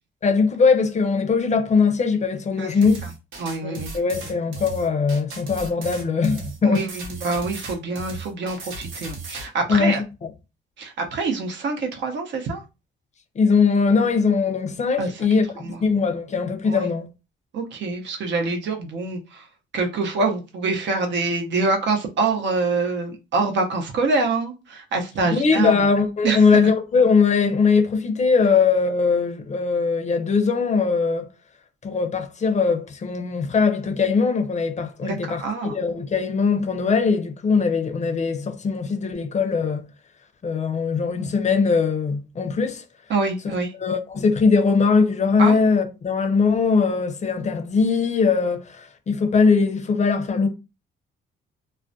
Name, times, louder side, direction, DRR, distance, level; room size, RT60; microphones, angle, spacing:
voice 1, 0.2-3.0 3.6-6.9 9.7-10.0 13.4-15.4 15.8-17.1 25.3-31.3 31.8-39.9 40.4-42.8 43.4-43.5 43.8-50.5, left 5 dB, 35° left, 0.5 m, -20 dB
sound 1, 2.8-9.5, right 3 dB, 85° right, 0.9 m, -36 dB
voice 2, 3.4-3.9 6.6-10.0 10.8-12.6 15.0-15.2 15.6-15.8 16.6-16.9 17.5-19.5 19.7-25.9 26.2-26.4 35.0-35.8 43.1-43.7 45.4-45.6, right 3 dB, 65° right, 0.7 m, -25 dB
2.3 x 2.1 x 2.5 m
cardioid pair, 90°, 20 cm